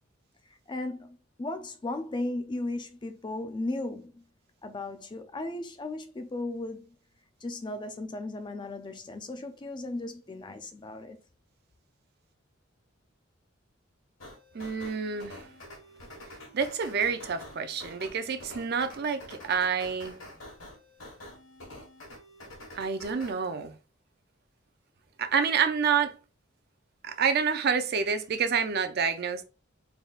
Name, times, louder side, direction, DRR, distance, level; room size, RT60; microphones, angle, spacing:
voice 1, 0.7-4.2 4.6-7.0 7.4-11.2, left 2 dB, 25° left, 0.4 m, -36 dB
sound 1, 14.2-23.3, left 1 dB, 70° left, 1.4 m, -47 dB
voice 2, 14.5-15.4 16.5-20.2 22.7-23.7 25.2-26.2 27.0-29.5, right 6 dB, 50° right, 0.5 m, -28 dB
3.9 x 3.5 x 2.4 m
head